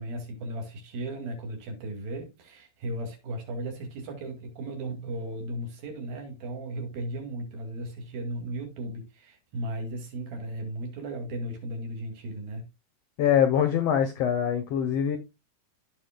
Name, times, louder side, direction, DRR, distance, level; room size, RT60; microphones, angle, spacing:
voice 1, 0.0-12.6, right 1 dB, 80° right, 4.1 m, -36 dB
voice 2, 13.2-15.2, left 9 dB, 75° left, 1.4 m, -23 dB
15.0 x 5.2 x 2.2 m
omnidirectional pair, 4.1 m